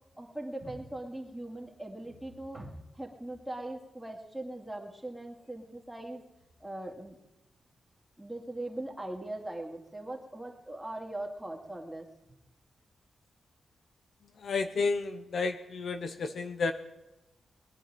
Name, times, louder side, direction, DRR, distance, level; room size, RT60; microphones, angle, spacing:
voice 1, 0.1-6.2 6.6-7.2 8.2-12.0, right 1 dB, 5° right, 1 dB, 2.4 m, -40 dB
voice 2, 14.4-16.7, left 4 dB, 60° left, 8 dB, 1.0 m, -31 dB
20.5 x 10.5 x 5.1 m, 0.96 s
wide cardioid pair, 115°, 0 cm